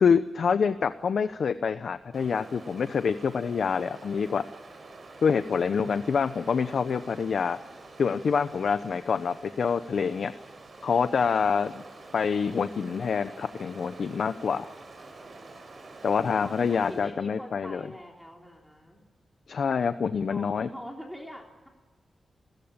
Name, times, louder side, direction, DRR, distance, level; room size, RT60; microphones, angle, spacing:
voice 1, 0.0-4.5 5.2-7.6 8.0-10.3 10.8-11.8 12.1-14.7 16.0-17.8 19.5-20.7, left 6 dB, 70° left, 11 dB, 0.8 m, -26 dB
Stream, 2.1-17.2, right 3 dB, 45° right, 5.2 m, -48 dB
voice 2, 16.3-19.0 20.3-21.7, equal, 5° left, 1 dB, 3.4 m, -43 dB
28.5 x 16.0 x 8.8 m, 1.4 s
wide cardioid pair, 115°, 0 cm